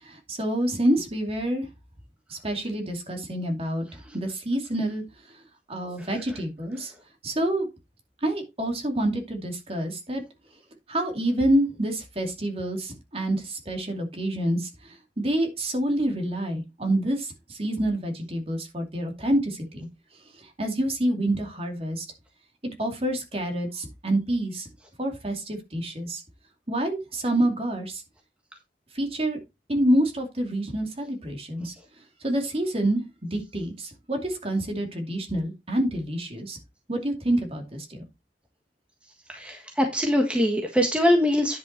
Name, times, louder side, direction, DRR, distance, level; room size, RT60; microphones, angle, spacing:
voice 1, 0.1-1.7 2.3-3.9 4.1-5.0 5.7-6.9 7.2-7.7 8.2-10.2 10.9-14.7 15.2-19.9 20.6-22.0 22.6-24.7 25.0-26.2 26.7-28.0 28.9-29.4 29.7-31.7 32.2-33.0 33.3-36.6 36.9-38.0, right 1 dB, 35° right, 4 dB, 2.5 m, -27 dB
voice 2, 39.3-41.6, equal, 5° right, 3 dB, 1.4 m, -23 dB
10.0 x 5.5 x 4.5 m, 0.24 s
head